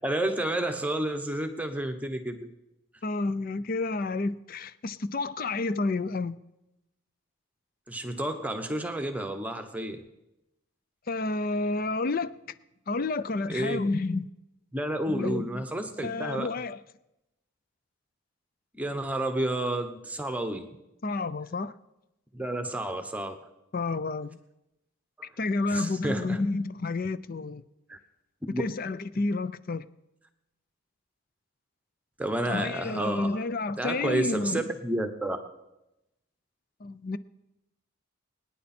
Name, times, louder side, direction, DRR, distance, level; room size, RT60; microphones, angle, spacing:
voice 1, 0.0-2.5 7.9-10.0 13.5-13.8 14.7-16.5 18.7-20.7 22.3-23.5 25.2-25.3 25.7-26.4 27.9-28.0 28.5-28.6 32.2-33.4 33.8-35.4, right 1 dB, 5° right, 0.9 m, -30 dB
voice 2, 3.0-6.4 11.1-12.4 12.9-14.3 15.1-15.6 16.0-16.8 21.0-21.7 23.7-24.4 25.4-27.6 28.6-29.8 32.5-34.7 36.8-37.2, left 3 dB, 40° left, 0.5 m, -30 dB
24.5 x 9.7 x 4.3 m
head